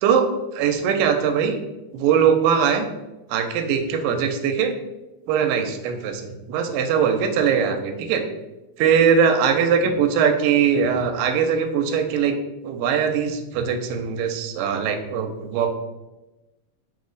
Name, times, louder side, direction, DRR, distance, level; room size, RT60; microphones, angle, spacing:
voice 1, 0.0-1.6 1.9-2.9 3.3-4.7 5.3-8.2 8.8-12.4 12.6-15.7, right 7 dB, 85° right, 5 dB, 2.2 m, -21 dB
6.0 x 2.0 x 3.8 m, 1.0 s
omnidirectional pair, 3.9 m